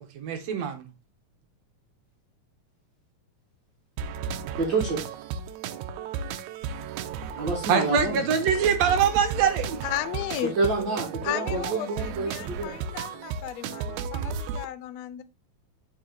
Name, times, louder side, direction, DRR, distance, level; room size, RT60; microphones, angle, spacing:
voice 1, 0.2-0.8 7.7-9.8, right 7 dB, 65° right, 2.1 m, -23 dB
sound 1, 4.0-14.7, right 6 dB, 85° right, 2.0 m, -34 dB
voice 2, 4.6-5.0 7.4-8.2 10.6-12.3 12.6-12.7, right 3 dB, 45° right, 2.2 m, -27 dB
voice 3, 9.8-10.6 11.2-15.2, left 12 dB, 75° left, 1.7 m, -34 dB
7.3 x 4.8 x 3.8 m
omnidirectional pair, 3.4 m